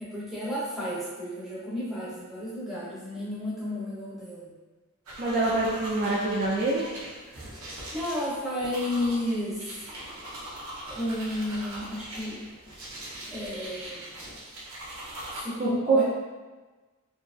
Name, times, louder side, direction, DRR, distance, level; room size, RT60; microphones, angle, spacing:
voice 1, 0.0-4.5 7.9-9.8 10.9-12.4 13.3-14.2 15.3-16.0, left 1 dB, ahead, -10 dB, 0.7 m, -32 dB
sound 1, 5.1-15.4, right 1 dB, 80° right, 0.7 m, -41 dB
voice 2, 5.2-6.9 15.6-16.0, right 3 dB, 35° right, -6 dB, 0.3 m, -25 dB
2.9 x 2.4 x 2.3 m, 1.3 s
head